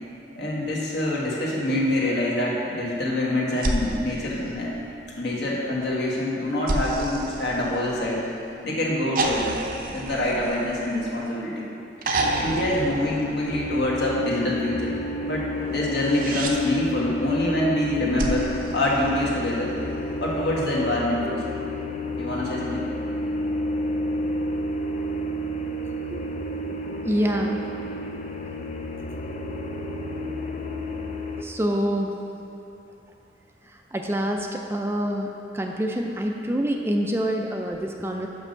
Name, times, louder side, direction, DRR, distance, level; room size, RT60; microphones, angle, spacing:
voice 1, 0.3-4.7 5.2-8.2 8.6-9.6 9.8-11.7 12.4-14.9 15.2-19.8 20.2-21.4 22.1-22.8, left 1 dB, 70° left, -4 dB, 1.6 m, -25 dB
sound 1, 3.6-5.2 6.7-8.3 9.2-11.4 12.0-13.8 15.8-16.6 18.2-19.7 21.2-21.3, right 2 dB, 50° right, 0.7 m, -30 dB
sound 2, 12.2-31.4, left 1 dB, 40° left, 0.5 m, -31 dB
voice 2, 27.0-27.6 31.4-32.1 33.9-38.3, equal, 15° right, 2 dB, 0.4 m, -26 dB
5.8 x 5.4 x 6.7 m, 2.8 s
head